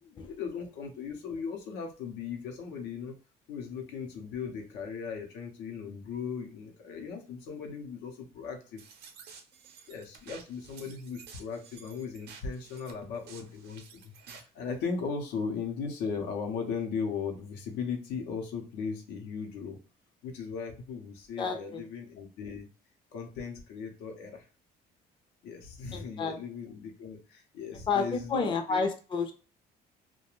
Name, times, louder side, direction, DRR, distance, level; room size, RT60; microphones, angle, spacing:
voice 1, 0.0-3.2 3.5-8.8 9.9-19.8 20.2-22.7 23.1-24.4 25.4-28.9, left 5 dB, 85° left, 3 dB, 0.7 m, -37 dB
sound 1, 8.8-14.5, right 6 dB, 75° right, 0.6 m, -52 dB
voice 2, 21.4-21.8 25.9-26.4 27.9-29.4, left 5 dB, 30° left, 5 dB, 0.5 m, -30 dB
2.4 x 2.2 x 2.9 m, 0.37 s
cardioid pair, 110°, 17 cm